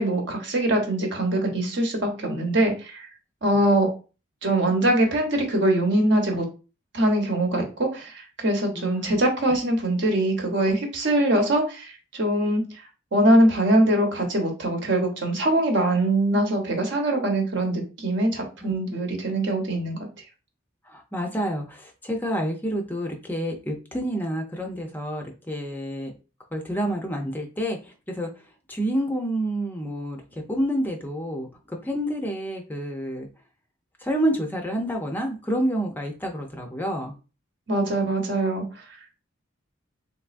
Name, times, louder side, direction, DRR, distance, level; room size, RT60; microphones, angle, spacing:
voice 1, 0.0-3.1 3.4-3.9 4.4-6.5 6.9-12.6 13.1-20.1 37.7-38.6, right 1 dB, 60° right, 2 dB, 0.9 m, -22 dB
voice 2, 8.7-9.2 18.6-18.7 20.9-26.1 26.5-28.3 28.7-33.3 34.0-37.1, equal, 10° left, 2 dB, 0.5 m, -28 dB
3.4 x 3.0 x 2.5 m, 0.33 s
head